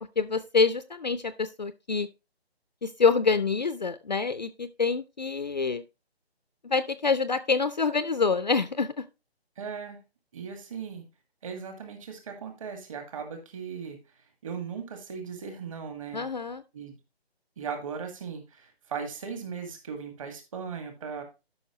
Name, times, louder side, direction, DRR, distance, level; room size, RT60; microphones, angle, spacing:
voice 1, 0.0-2.1 2.8-5.8 6.6-9.0 16.1-16.6, left 4 dB, 45° left, 13 dB, 0.4 m, -26 dB
voice 2, 9.6-10.0 10.3-11.0 11.4-14.0 14.4-16.2 16.7-17.0 17.6-21.2, right 6 dB, 30° right, 5 dB, 1.9 m, -38 dB
12.0 x 5.5 x 3.0 m, 0.27 s
figure-of-eight pair, 160°, 32 cm